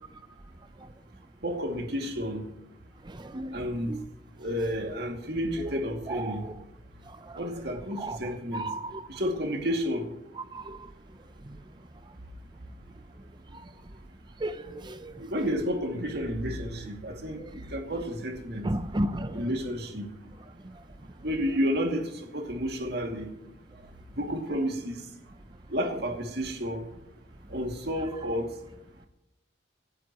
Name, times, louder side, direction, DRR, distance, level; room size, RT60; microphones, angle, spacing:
voice 1, 1.4-2.4 3.5-3.9 4.4-6.4 7.4-8.7 9.1-10.1 15.2-18.7 19.3-20.0 21.2-23.3 24.1-25.0 25.7-26.9 27.5-28.5, equal, 60° right, 2.5 m, -31 dB
voice 2, 3.1-3.6 3.9-4.0 5.6-5.7 6.1-6.4 8.0-8.2 8.5-9.0 10.5-10.9 14.4-15.1 17.4-17.5 18.6-19.4, right 1 dB, 25° right, 0.7 m, -33 dB
27.0 x 12.0 x 3.1 m
head